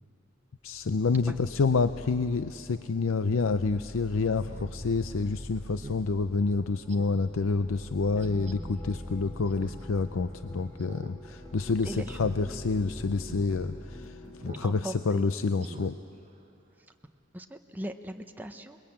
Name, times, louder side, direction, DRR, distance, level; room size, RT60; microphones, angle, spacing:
voice 1, 0.6-16.0, left 4 dB, 80° left, 11 dB, 0.5 m, -28 dB
sound 1, 0.7-14.7, equal, 15° left, 3.8 m, -44 dB
Speech synthesizer, 3.4-3.6 4.0-4.1 4.4-4.8 5.2-5.3 5.8-6.0 6.4-6.5 6.9-7.2 8.2-8.5 9.5-9.8 10.1-10.2 10.8-11.1 11.4-11.7 12.1-12.4 12.8-12.9 13.2-13.5 14.4-14.7 15.0-15.1 15.6-15.9 16.3-16.4, right 2 dB, 35° right, 1.3 m, -45 dB
voice 2, 11.8-12.2 14.0-14.3 14.6-15.3 17.3-18.8, right 1 dB, 10° right, 5 dB, 0.8 m, -39 dB
28.5 x 21.0 x 8.7 m, 2.8 s
head